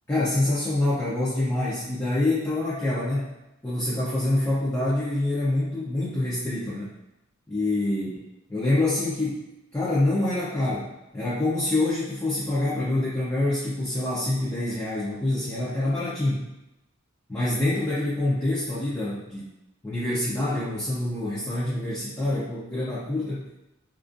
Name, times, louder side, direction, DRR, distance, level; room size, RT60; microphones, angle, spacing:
voice 1, 0.1-3.3 3.6-6.9 7.5-9.4 9.7-16.5 17.3-19.5 19.8-23.7, left 2 dB, 15° left, -9 dB, 0.4 m, -26 dB
2.4 x 2.3 x 2.4 m, 0.93 s
head